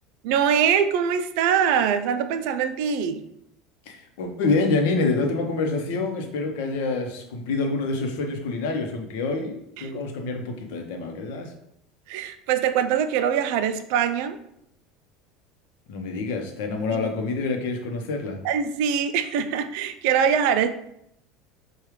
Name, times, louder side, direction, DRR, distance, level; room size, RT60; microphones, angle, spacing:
voice 1, 0.2-3.2 9.8-10.0 12.1-14.4 16.9-17.0 18.4-20.7, right 8 dB, 70° right, 10 dB, 0.3 m, -23 dB
voice 2, 3.9-11.5 15.9-18.4, left 3 dB, 80° left, 4 dB, 0.7 m, -27 dB
4.8 x 2.3 x 3.1 m, 0.76 s
cardioid pair, 150°, 0 cm